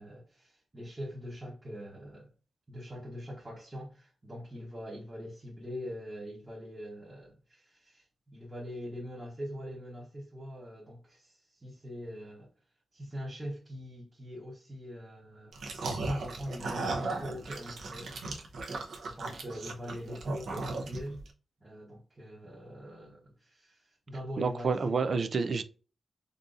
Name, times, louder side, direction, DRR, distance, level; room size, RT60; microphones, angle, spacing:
voice 1, 0.0-2.3 2.7-12.5 12.9-15.6 15.8-18.2 19.0-21.2 21.6-25.3, equal, 20° right, 0.9 m, -43 dB
sound 1, 15.5-21.3, right 3 dB, 75° right, 0.7 m, -36 dB
voice 2, 24.4-25.6, right 4 dB, 50° right, 0.3 m, -29 dB
3.8 x 2.6 x 2.4 m
wide cardioid pair, 175°, 0 cm